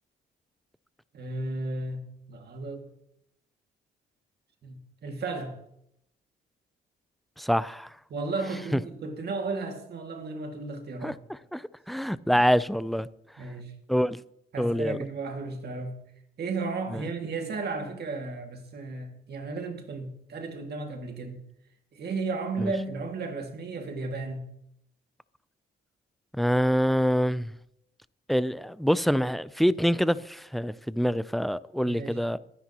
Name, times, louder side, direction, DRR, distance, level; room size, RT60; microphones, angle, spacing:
voice 1, 1.1-2.9 4.6-5.6 8.1-11.2 13.4-13.7 14.5-16.0 16.4-21.4 21.9-24.4 31.8-32.2, right 3 dB, 55° right, 2.2 m, -34 dB
voice 2, 7.4-7.9 8.7-8.8 11.0-11.1 11.5-13.1 13.9-14.2 14.6-15.0 16.9-17.0 22.6-22.7 26.3-27.6 28.3-32.4, equal, ahead, 0.4 m, -25 dB
22.5 x 10.0 x 3.0 m
cardioid pair, 90°, 20 cm